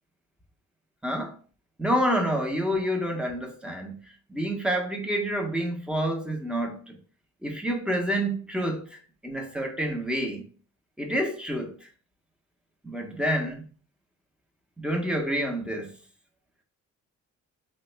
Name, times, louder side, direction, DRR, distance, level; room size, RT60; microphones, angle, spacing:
voice 1, 1.0-1.4 1.8-7.0 7.4-10.5 11.0-11.9 12.8-13.7 14.8-16.0, equal, 5° right, 0.7 m, -28 dB
3.4 x 2.1 x 3.1 m
cardioid pair, 90°, 30 cm